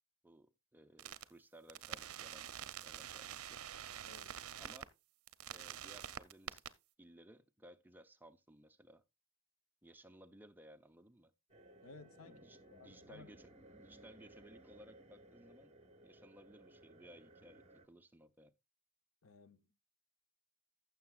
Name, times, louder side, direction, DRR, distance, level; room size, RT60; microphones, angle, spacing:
voice 1, 0.2-3.6 4.6-4.9 5.5-6.6 7.0-9.0 9.8-11.3 12.3-15.7 16.0-18.5, right 1 dB, 10° right, 0.5 m, -60 dB
sound 1, 1.0-1.2 1.7-4.8 5.3-6.7, right 10 dB, 70° right, 0.6 m, -47 dB
voice 2, 4.0-4.4 11.8-12.5 12.7-13.3 19.2-19.7, left 3 dB, 70° left, 0.8 m, -57 dB
sound 2, 11.5-17.9, right 1 dB, 30° right, 1.1 m, -60 dB
15.5 x 7.0 x 2.3 m
head